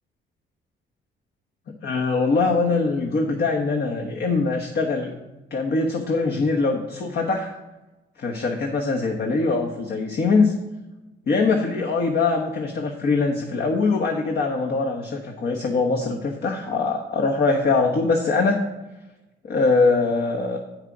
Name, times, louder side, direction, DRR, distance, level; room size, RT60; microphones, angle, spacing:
voice 1, 1.8-5.1 5.5-7.5 8.2-10.6 11.3-18.7 19.4-20.6, left 3 dB, 55° left, 1 dB, 1.1 m, -22 dB
8.5 x 6.6 x 4.9 m, 1.0 s
cardioid pair, 90°, 20 cm